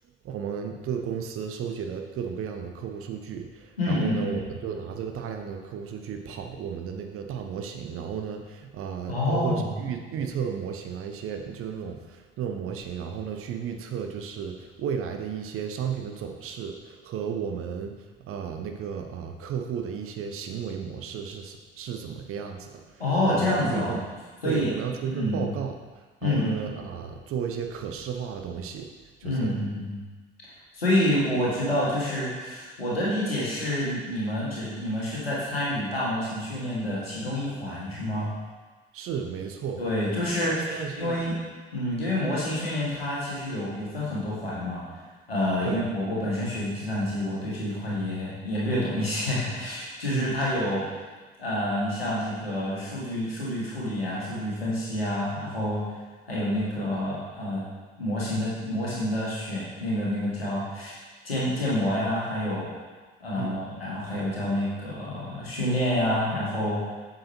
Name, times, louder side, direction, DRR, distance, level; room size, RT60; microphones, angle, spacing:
voice 1, 0.2-17.9 18.3-24.0 24.4-25.7 26.2-28.9 29.2-29.5 38.9-39.8 40.4-41.2 45.6-45.8 50.1-50.4 63.4-63.6, right 7 dB, 50° right, 4 dB, 0.8 m, -33 dB
voice 2, 3.8-4.4 9.1-9.7 23.0-24.0 24.4-24.7 25.1-25.5 26.2-26.6 29.2-30.0 30.7-38.3 39.8-41.3 41.7-44.8 45.3-50.8 51.4-55.8 56.3-57.6 58.0-61.0 61.2-62.7 63.2-66.8, left 1 dB, 85° left, -7 dB, 1.6 m, -28 dB
8.0 x 6.6 x 2.8 m, 1.4 s
figure-of-eight pair, 50°, 29 cm